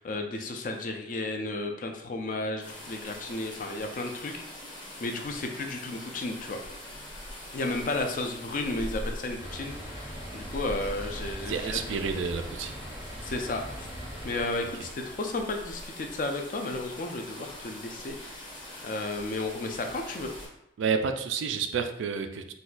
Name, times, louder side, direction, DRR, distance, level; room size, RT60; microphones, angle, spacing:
voice 1, 0.0-4.4 5.0-6.6 7.5-12.1 13.2-13.9 14.2-18.5 18.8-20.3, left 2 dB, 45° left, 4 dB, 0.4 m, -33 dB
sound 1, 2.6-20.5, left 1 dB, 25° left, 0.8 m, -43 dB
sound 2, 9.4-14.5, equal, 15° right, 0.5 m, -41 dB
voice 2, 11.5-12.7 20.8-22.5, right 6 dB, 80° right, 7 dB, 0.3 m, -30 dB
4.0 x 2.2 x 2.4 m, 0.80 s
head